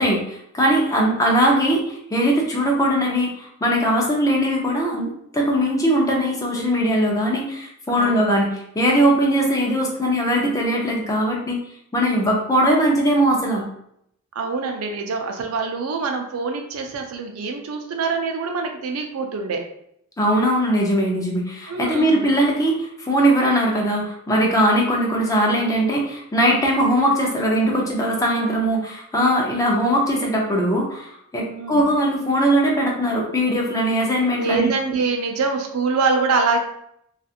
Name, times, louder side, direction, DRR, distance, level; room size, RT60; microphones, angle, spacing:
voice 1, 0.0-1.8 2.1-11.6 11.9-13.6 20.2-34.7, equal, 15° left, -1 dB, 0.5 m, -20 dB
voice 2, 7.9-8.3 14.3-19.6 21.7-22.3 31.5-31.8 34.3-36.6, right 4 dB, 80° right, 3 dB, 0.4 m, -24 dB
2.7 x 2.4 x 2.4 m, 0.73 s
head